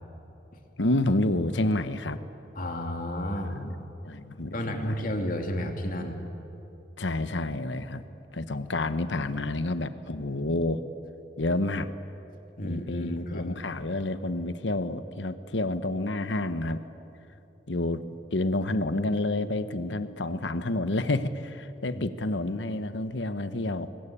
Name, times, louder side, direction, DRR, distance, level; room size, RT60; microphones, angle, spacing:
voice 1, 0.8-2.2 3.4-3.8 4.0-5.0 7.0-8.0 8.3-10.8 11.4-11.9 12.6-16.8 17.7-23.9, left 2 dB, 75° left, 11 dB, 1.1 m, -29 dB
voice 2, 2.5-3.5 4.5-6.2 12.6-13.6 21.9-22.0, left 1 dB, 45° left, 3 dB, 2.8 m, -32 dB
26.0 x 22.5 x 8.7 m, 2.9 s
head